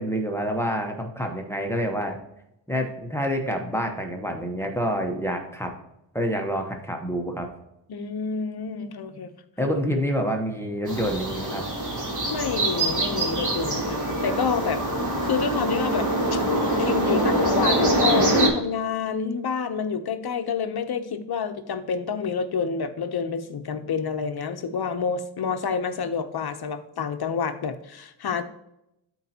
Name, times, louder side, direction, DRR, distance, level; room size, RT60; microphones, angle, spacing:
voice 1, 0.0-2.2 2.7-5.7 6.1-7.5 9.6-11.6, equal, 5° left, 3 dB, 1.0 m, -27 dB
voice 2, 7.9-9.3 12.3-16.4 16.8-28.4, left 6 dB, 55° left, 9 dB, 0.8 m, -28 dB
sound 1, 10.9-18.5, right 1 dB, 40° right, 2.6 m, -24 dB
12.5 x 4.5 x 2.9 m, 0.83 s
wide cardioid pair, 115°, 46 cm